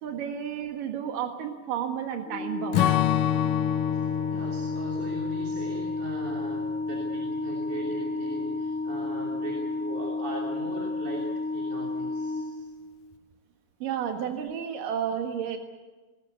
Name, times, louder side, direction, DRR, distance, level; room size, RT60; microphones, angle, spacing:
voice 1, 0.0-3.0 13.8-15.6, right 8 dB, 80° right, 4 dB, 3.3 m, -32 dB
Organ, 2.3-13.1, left 2 dB, 40° left, 1.1 m, -32 dB
Strum, 2.7-7.4, left 13 dB, 80° left, 2.4 m, -29 dB
voice 2, 4.3-12.7, right 3 dB, 65° right, -1 dB, 4.5 m, -39 dB
20.0 x 20.0 x 8.3 m, 1.2 s
omnidirectional pair, 3.8 m